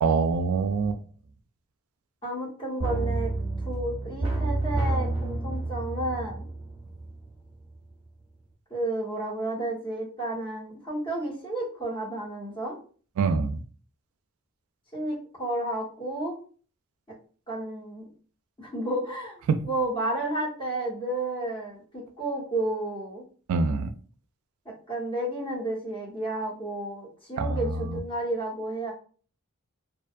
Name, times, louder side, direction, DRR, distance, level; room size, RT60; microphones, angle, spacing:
voice 1, 0.0-1.0 13.2-13.6 19.5-19.6 23.5-23.9 27.4-27.6, right 4 dB, 80° right, 0.3 m, -24 dB
voice 2, 2.2-3.3 3.6-6.5 8.7-12.8 14.9-16.3 17.5-18.0 18.6-23.2 24.6-28.9, right 1 dB, 25° left, 1.0 m, -31 dB
sound 1, 2.8-7.5 7.8-7.9, right 2 dB, 20° right, 0.9 m, -29 dB
2.5 x 2.2 x 2.5 m
head